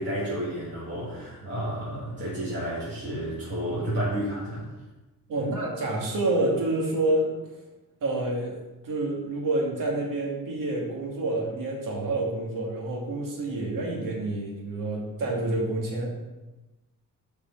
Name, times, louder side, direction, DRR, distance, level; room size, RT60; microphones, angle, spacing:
voice 1, 0.0-4.6 5.4-5.5, right 1 dB, 35° right, -9 dB, 2.8 m, -31 dB
voice 2, 5.3-7.3 8.0-8.6 8.8-16.1, right 2 dB, 70° right, -1 dB, 2.5 m, -28 dB
7.7 x 5.3 x 5.7 m, 1.1 s
cardioid pair, 140°, 34 cm